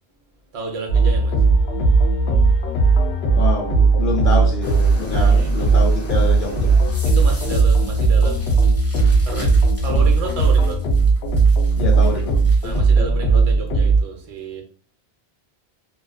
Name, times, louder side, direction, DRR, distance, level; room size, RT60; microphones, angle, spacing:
voice 1, 0.5-1.4 5.1-5.7 7.0-8.7 9.2-10.8 12.6-14.6, right 4 dB, 45° right, 0.5 m, -31 dB
sound 1, 0.9-14.0, right 4 dB, 90° left, 0.9 m, -17 dB
voice 2, 3.3-6.8 11.8-12.4, left 4 dB, 60° left, 0.6 m, -26 dB
sound 2, 4.6-12.8, left 1 dB, 20° left, 0.4 m, -39 dB
2.3 x 2.2 x 2.4 m
omnidirectional pair, 1.0 m